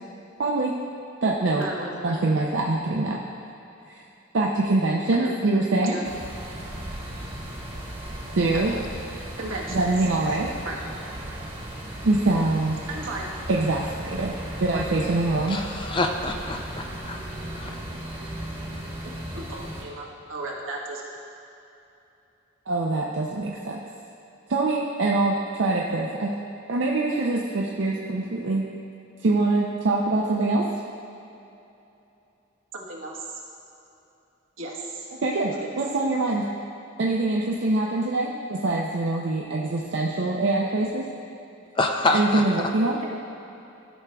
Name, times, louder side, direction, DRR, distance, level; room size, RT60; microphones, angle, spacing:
voice 1, 0.4-0.7 1.2-1.6 2.0-3.2 4.3-6.0 8.4-8.7 9.7-10.5 12.0-12.9 13.5-14.3 14.6-15.6 22.7-23.8 24.5-26.3 26.7-28.7 29.2-30.7 35.2-36.5 37.0-41.0 42.1-43.0, right 2 dB, 65° right, -2 dB, 0.5 m, -24 dB
voice 2, 1.6-2.1 5.1-5.3 5.8-6.0 8.5-8.8 9.4-9.8 10.6-10.8 12.9-13.4 14.7-14.9 17.6-17.7 19.0-21.2 32.7-33.4 34.6-35.1 35.6-35.8 43.0-43.1, right 2 dB, 90° right, -3 dB, 1.2 m, -35 dB
sound 1, 6.0-19.8, right 1 dB, 30° right, 1.1 m, -36 dB
voice 3, 15.5-17.2 17.6-17.7 41.8-42.4, left 2 dB, 25° left, 3 dB, 0.4 m, -26 dB
13.0 x 6.2 x 2.3 m, 2.9 s
head